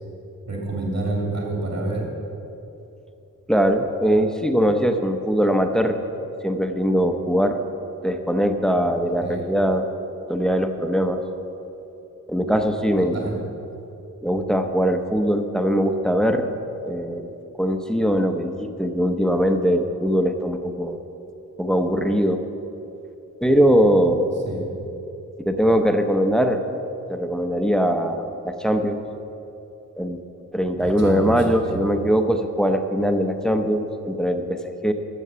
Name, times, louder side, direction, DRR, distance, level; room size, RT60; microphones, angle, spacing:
voice 1, 0.5-2.1 9.2-9.4 13.0-13.4 24.4-24.6 30.8-31.8, right 2 dB, 55° right, -2 dB, 2.8 m, -28 dB
voice 2, 3.5-6.0 6.4-7.6 8.0-9.9 10.3-11.2 12.3-13.3 14.2-16.5 16.9-21.0 21.6-22.5 23.4-24.3 25.4-26.6 27.1-29.0 30.0-30.2 30.5-34.9, equal, ahead, 6 dB, 0.7 m, -21 dB
12.5 x 7.8 x 6.9 m, 2.9 s
wide cardioid pair, 140°, 32 cm